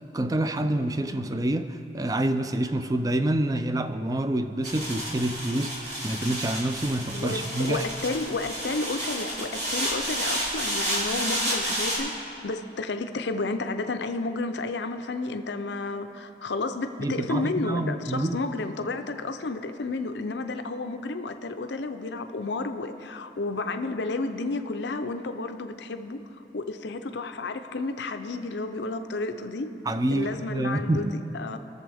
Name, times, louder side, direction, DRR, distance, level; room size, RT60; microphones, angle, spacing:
voice 1, 0.1-7.8 17.0-18.4 29.9-31.1, right 1 dB, 20° right, 9 dB, 0.4 m, -27 dB
sound 1, 4.6-12.0, right 1 dB, 75° right, 2.9 m, -31 dB
voice 2, 7.1-12.2 12.4-26.2 26.5-29.7 30.1-31.6, left 3 dB, 80° left, 8 dB, 0.6 m, -31 dB
21.0 x 7.1 x 3.5 m, 2.8 s
head